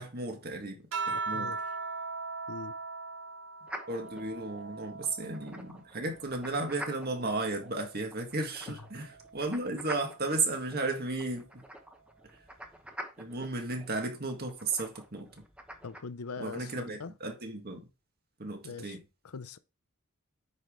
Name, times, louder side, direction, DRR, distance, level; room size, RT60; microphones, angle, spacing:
voice 1, 0.0-1.6 3.9-11.6 13.2-15.3 16.4-17.8 18.4-19.0, right 3 dB, 45° right, 1.8 m, -34 dB
sound 1, 0.9-5.7 6.2-7.9 9.1-9.6, right 4 dB, 60° right, 2.6 m, -39 dB
voice 2, 1.1-1.6 2.5-2.7 15.8-17.1 18.6-19.0 19.2-19.6, left 5 dB, 90° left, 0.7 m, -41 dB
sound 2, 3.7-16.0, equal, 5° right, 1.0 m, -47 dB
9.4 x 5.0 x 3.8 m
head